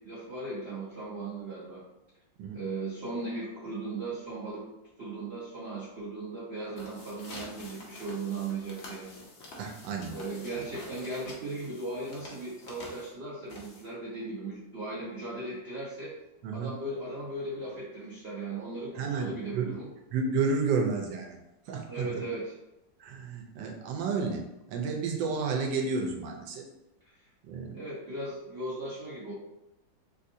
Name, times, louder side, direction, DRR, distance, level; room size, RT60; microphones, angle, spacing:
voice 1, 0.0-1.8 2.5-4.6 5.0-9.1 10.1-16.1 16.5-19.9 21.9-22.5 27.7-29.3, right 2 dB, 60° right, -7 dB, 0.6 m, -37 dB
sound 1, 6.6-14.1, left 2 dB, 60° left, 0.7 m, -48 dB
voice 2, 9.6-10.1 10.5-10.6 16.4-16.7 19.0-19.8 20.1-21.4 21.7-22.2 23.0-24.4 24.7-26.7 27.4-27.7, right 4 dB, 85° right, 1 dB, 1.3 m, -31 dB
3.5 x 2.5 x 2.6 m, 0.91 s
omnidirectional pair, 2.0 m